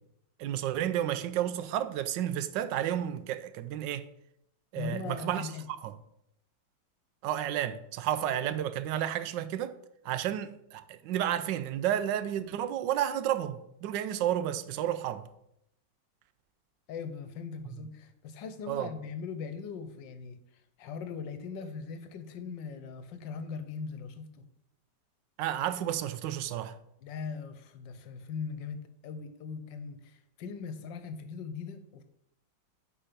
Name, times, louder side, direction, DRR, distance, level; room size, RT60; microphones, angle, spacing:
voice 1, 0.4-4.1 4.7-5.5 5.8-5.9 7.2-9.8 10.0-15.2 18.7-18.9 25.4-26.7, right 11 dB, 80° right, 1.3 m, -31 dB
voice 2, 4.8-5.7 16.9-20.4 20.8-24.5 27.0-32.0, left 5 dB, 90° left, 1.5 m, -40 dB
8.7 x 5.1 x 5.1 m
omnidirectional pair, 1.9 m